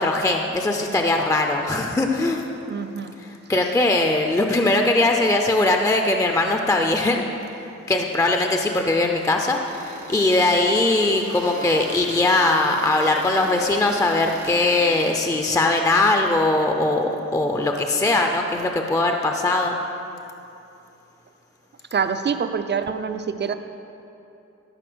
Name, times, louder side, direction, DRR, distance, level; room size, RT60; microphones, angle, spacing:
voice 1, 0.0-2.4 3.2-7.2 7.9-19.8, left 2 dB, 10° left, 3 dB, 0.6 m, -20 dB
voice 2, 2.7-3.1 21.9-23.5, right 6 dB, 35° right, 9 dB, 0.6 m, -25 dB
sound 1, 9.6-15.1, right 2 dB, 75° right, 2.0 m, -38 dB
14.0 x 5.4 x 6.2 m, 2.8 s
wide cardioid pair, 115°, 30 cm